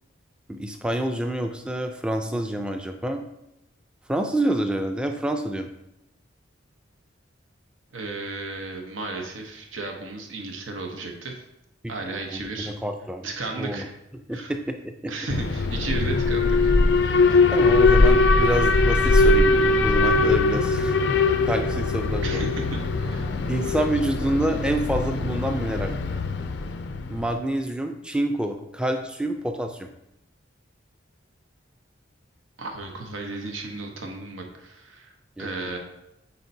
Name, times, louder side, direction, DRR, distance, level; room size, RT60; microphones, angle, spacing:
voice 1, 0.5-3.2 4.1-5.7 11.8-11.9 12.3-13.3 13.6-13.9 14.3-15.1 17.5-21.0 21.5-22.5 23.5-25.9 27.1-29.9 35.4-35.7, right 1 dB, 5° right, 5 dB, 0.4 m, -27 dB
voice 2, 7.9-11.4 11.9-12.7 13.2-13.9 14.3-14.5 15.1-17.4 22.2-23.3 32.6-35.1 35.4-35.8, right 3 dB, 85° right, 2 dB, 0.9 m, -34 dB
Alarm, 15.3-27.3, left 3 dB, 60° left, 0.4 m, -21 dB
8.3 x 4.3 x 2.7 m, 0.87 s
head